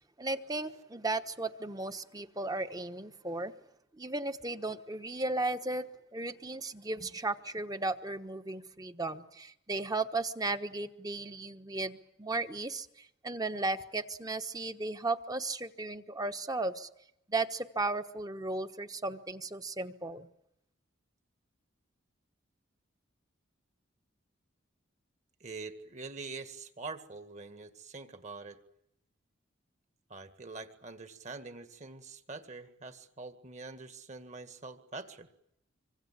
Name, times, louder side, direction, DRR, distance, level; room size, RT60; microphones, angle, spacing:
voice 1, 0.2-3.5 4.0-16.9 17.3-20.3, right 2 dB, 20° right, 9 dB, 1.2 m, -35 dB
voice 2, 25.4-28.6 30.1-35.3, right 3 dB, 35° right, 9 dB, 1.9 m, -45 dB
25.5 x 25.5 x 7.4 m, 0.78 s
head